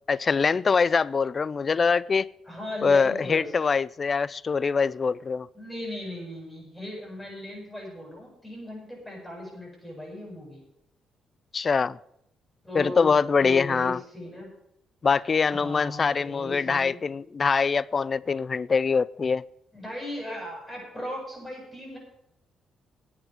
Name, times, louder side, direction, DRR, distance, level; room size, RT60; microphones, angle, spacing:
voice 1, 0.1-2.3 2.8-5.5 11.5-12.0 12.7-14.0 15.0-19.4, left 5 dB, 40° left, 0.4 m, -23 dB
voice 2, 2.4-3.5 5.5-10.6 12.6-13.1 13.4-14.5 15.5-17.0 19.7-22.0, left 1 dB, 10° left, 7.8 m, -37 dB
11.0 x 8.9 x 9.5 m
cardioid pair, 90°, 0 cm